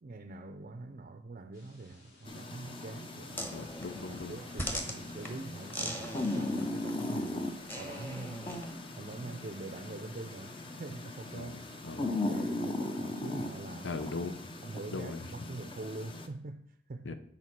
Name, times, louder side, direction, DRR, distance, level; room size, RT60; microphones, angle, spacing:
voice 1, 0.0-3.6 4.1-8.6 9.0-11.6 11.9-14.0 14.6-17.2, right 2 dB, 45° right, 0.5 m, -44 dB
sound 1, 1.5-14.1, left 2 dB, 65° left, 2.5 m, -59 dB
sound 2, 2.3-16.3, left 2 dB, 30° left, 0.7 m, -38 dB
sound 3, 3.3-8.8, equal, 10° left, 1.1 m, -41 dB
voice 2, 3.5-4.4 11.3-12.2 13.8-14.4 14.9-15.2 17.0-17.2, left 3 dB, 85° left, 0.8 m, -39 dB
9.1 x 4.3 x 5.9 m
head